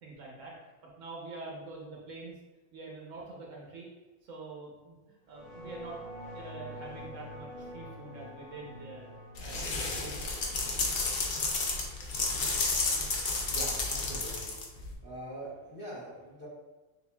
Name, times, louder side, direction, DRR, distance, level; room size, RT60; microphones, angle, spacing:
voice 1, 0.0-0.5 1.0-2.4 2.7-3.9 4.2-6.0 6.3-9.1 9.4-10.3 11.3-11.5, right 3 dB, 65° right, -2 dB, 1.1 m, -45 dB
sound 1, 5.2-13.9, equal, 80° left, 2.1 m, -47 dB
sound 2, 9.4-14.9, left 3 dB, 60° left, 0.5 m, -31 dB
voice 2, 13.5-16.5, equal, 15° left, -8 dB, 1.1 m, -44 dB
6.7 x 2.4 x 2.2 m, 1.2 s
omnidirectional pair, 1.5 m